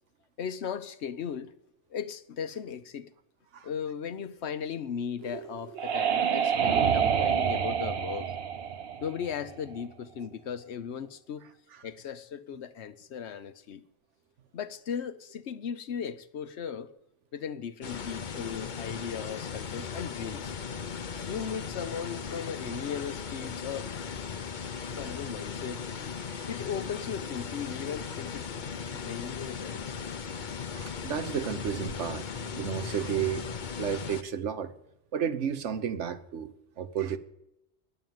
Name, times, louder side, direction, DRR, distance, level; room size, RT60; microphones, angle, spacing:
voice 1, 0.4-1.6 1.9-3.1 3.6-8.3 9.0-11.4 11.8-13.8 14.5-16.9 17.3-20.6 21.2-23.9 25.0-25.9 26.5-30.0, left 7 dB, 70° left, 1.0 m, -37 dB
sound 1, 5.2-9.8, right 7 dB, 60° right, 1.0 m, -28 dB
sound 2, 17.8-34.2, left 6 dB, 45° left, 0.8 m, -37 dB
voice 2, 30.7-33.5 33.8-34.7 35.1-36.5 36.8-37.2, right 8 dB, 80° right, 1.3 m, -32 dB
10.5 x 8.1 x 9.2 m
omnidirectional pair, 1.2 m